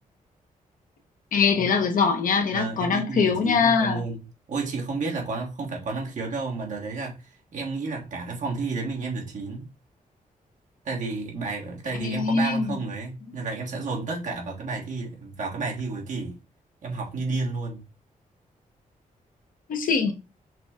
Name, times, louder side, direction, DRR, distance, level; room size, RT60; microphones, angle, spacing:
voice 1, 1.3-4.0 12.0-12.8 19.7-20.1, left 5 dB, 75° left, 1.0 m, -22 dB
voice 2, 2.5-9.7 10.8-16.4 16.8-17.9, right 3 dB, 65° right, 1.5 m, -31 dB
5.8 x 2.2 x 3.6 m
cardioid pair, 105°, 14 cm